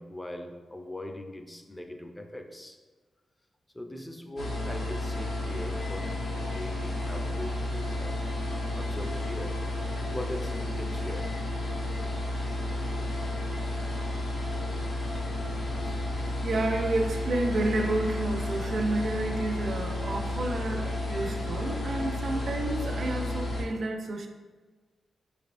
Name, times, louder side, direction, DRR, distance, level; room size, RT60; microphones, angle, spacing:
voice 1, 0.0-2.8 3.7-6.2 6.5-8.3 8.8-11.4, left 1 dB, 10° left, 5 dB, 0.4 m, -41 dB
sound 1, 4.4-23.6, left 1 dB, 60° left, 1.3 m, -32 dB
voice 2, 16.2-24.3, right 2 dB, 55° right, 4 dB, 0.4 m, -30 dB
4.7 x 3.4 x 2.5 m, 1.4 s
wide cardioid pair, 130°, 0 cm